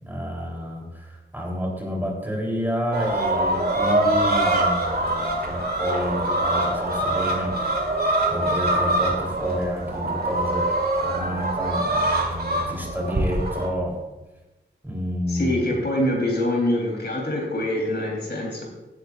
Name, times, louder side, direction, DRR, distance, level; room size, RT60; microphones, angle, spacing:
voice 1, 0.0-7.5 8.3-10.7 11.0-14.0 14.8-15.8, equal, 10° right, -2 dB, 3.6 m, -29 dB
sound 1, 2.9-13.7, right 1 dB, 55° right, 2.1 m, -24 dB
voice 2, 15.3-18.6, left 1 dB, 60° left, -2 dB, 3.8 m, -24 dB
16.0 x 10.5 x 2.5 m, 1.1 s
wide cardioid pair, 85°, 19 cm